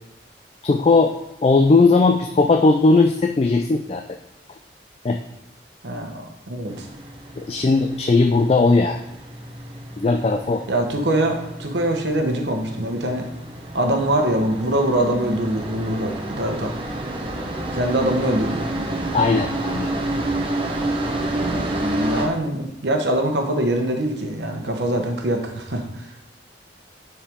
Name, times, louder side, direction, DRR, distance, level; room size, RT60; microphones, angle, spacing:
voice 1, 0.6-1.1 1.4-4.0 5.0-5.2 7.4-9.0 10.0-10.6 19.1-19.9, left 3 dB, 35° left, 5 dB, 0.3 m, -17 dB
voice 2, 5.8-6.9 10.7-13.3 13.7-16.7 17.7-18.7 21.3-26.1, right 1 dB, 75° right, 3 dB, 1.1 m, -23 dB
sound 1, 6.7-22.3, right 1 dB, 30° right, 0.9 m, -29 dB
10.0 x 4.5 x 3.6 m, 0.88 s
head